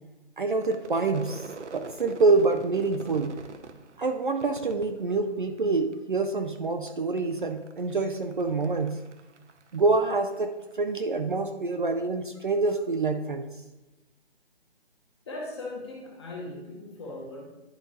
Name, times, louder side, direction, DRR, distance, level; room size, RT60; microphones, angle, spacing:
voice 1, 0.4-3.4 4.0-9.0 9.7-13.4, right 3 dB, 45° right, 6 dB, 0.5 m, -26 dB
Crowd / Fireworks, 0.5-5.9 6.2-6.9 7.2-10.7, right 4 dB, 85° right, 0.8 m, -45 dB
voice 2, 15.2-17.6, left 2 dB, 25° left, -2 dB, 1.3 m, -39 dB
11.0 x 4.4 x 3.0 m, 1.0 s
hypercardioid pair, 165°, 34 cm